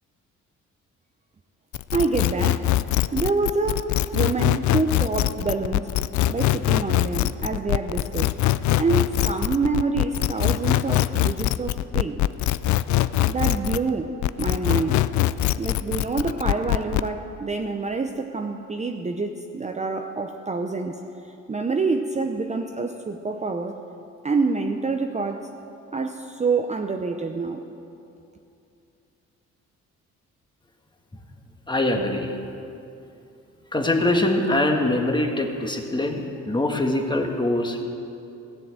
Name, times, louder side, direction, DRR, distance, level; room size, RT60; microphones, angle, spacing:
sound 1, 1.7-13.9 14.2-17.1, left 14 dB, 70° left, 0.4 m, -22 dB
voice 1, 1.9-2.7 3.1-5.9 6.3-8.4 8.8-12.2 13.3-15.0 15.6-21.0 21.5-23.8 24.2-25.5 25.9-27.6, right 4 dB, 25° right, 5 dB, 0.7 m, -27 dB
voice 2, 31.7-32.3 33.7-37.8, left 1 dB, 15° left, 3 dB, 1.6 m, -23 dB
16.0 x 7.7 x 7.7 m, 2.7 s
cardioid pair, 90°, 30 cm